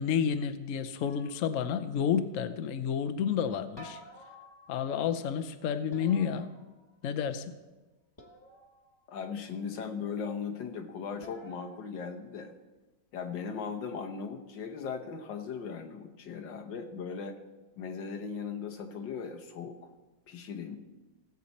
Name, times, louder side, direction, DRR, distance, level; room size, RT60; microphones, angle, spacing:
voice 1, 0.0-4.0 4.7-6.5 7.0-7.5, left 7 dB, 60° left, 10 dB, 0.9 m, -30 dB
sound 1, 1.0-1.9 3.8-5.1 5.9-7.2 8.2-9.0 11.2-11.8, left 1 dB, 15° left, 1.2 m, -52 dB
voice 2, 9.1-12.5 13.1-17.4 17.8-19.8 20.3-20.8, left 6 dB, 85° left, 4 dB, 1.8 m, -38 dB
17.0 x 7.6 x 4.2 m, 1.2 s
omnidirectional pair, 1.9 m